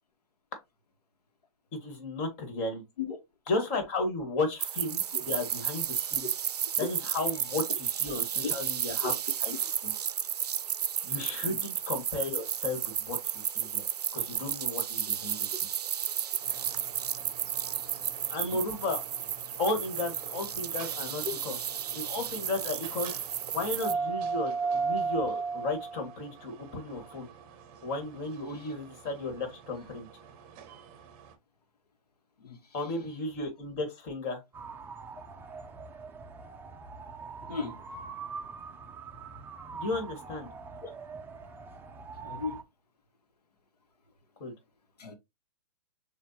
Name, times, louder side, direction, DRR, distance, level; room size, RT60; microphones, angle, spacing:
voice 1, 1.7-2.8 3.5-6.3 6.8-9.1 9.4-9.6 9.8-9.9 11.0-13.8 14.1-15.5 18.3-19.0 19.6-21.6 21.9-23.1 23.5-27.3 27.8-30.1 32.7-34.4 39.7-40.5 44.4-44.5, left 2 dB, 35° left, 1.9 m, -34 dB
sound 1, 4.6-23.9, right 9 dB, 85° right, 0.4 m, -33 dB
voice 2, 6.0-6.3 8.4-8.5 9.0-9.1 11.4-11.6 18.5-18.6 21.2-21.3 28.6-28.7 32.4-32.7 37.5-37.8 40.8-40.9 42.2-42.6 45.0-45.2, left 5 dB, 90° left, 1.2 m, -37 dB
sound 2, 16.4-31.3, right 5 dB, 35° right, 0.8 m, -38 dB
sound 3, 34.5-42.6, right 5 dB, 10° right, 0.5 m, -44 dB
6.7 x 2.5 x 2.8 m
hypercardioid pair, 130°, 20 cm